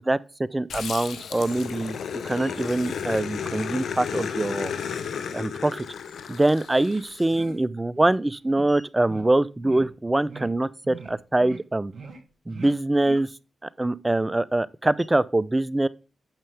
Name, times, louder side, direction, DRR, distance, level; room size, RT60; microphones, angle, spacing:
voice 1, 0.0-4.7 5.3-5.8 6.3-11.9 12.5-13.3 13.6-15.9, right 2 dB, 20° right, 0.6 m, -24 dB
Growling, 0.7-7.4, left 7 dB, 80° left, 0.9 m, -33 dB
sound 1, 6.9-7.0 7.3-7.6 8.0-8.1 8.5-8.6 9.1-9.3 9.6-9.9 10.3-10.5 10.8-11.1 11.4-11.6 11.9-12.2 12.5-12.7 13.0-13.2, right 5 dB, 65° right, 2.6 m, -41 dB
8.9 x 6.8 x 3.5 m
supercardioid pair, 40°, 0 cm